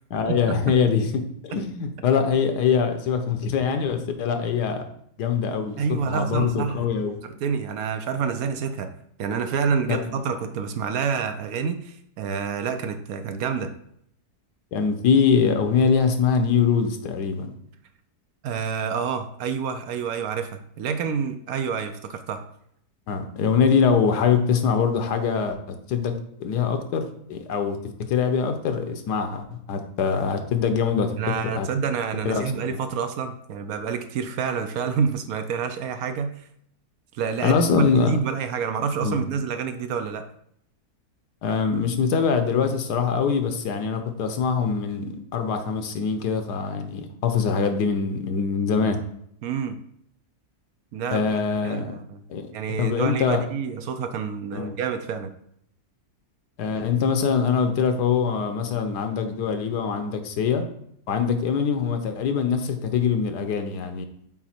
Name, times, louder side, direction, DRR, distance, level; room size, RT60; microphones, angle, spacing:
voice 1, 0.1-4.8 5.2-7.2 9.9-10.0 14.7-17.5 23.1-26.1 26.4-27.8 28.1-29.4 29.7-31.2 31.6-31.7 32.2-32.8 37.4-38.2 39.0-39.2 41.4-49.0 51.1-51.9 52.3-52.5 52.8-53.4 54.5-54.8 56.6-60.6 61.1-64.1, left 6 dB, 85° left, 7 dB, 1.4 m, -23 dB
voice 2, 5.8-6.9 7.2-8.9 9.2-13.7 18.4-22.4 31.2-36.3 37.2-40.3 49.4-49.8 50.9-51.3 51.6-52.2 52.5-55.3, right 6 dB, 70° right, 8 dB, 1.0 m, -28 dB
6.0 x 4.4 x 4.3 m, 0.71 s
omnidirectional pair, 1.7 m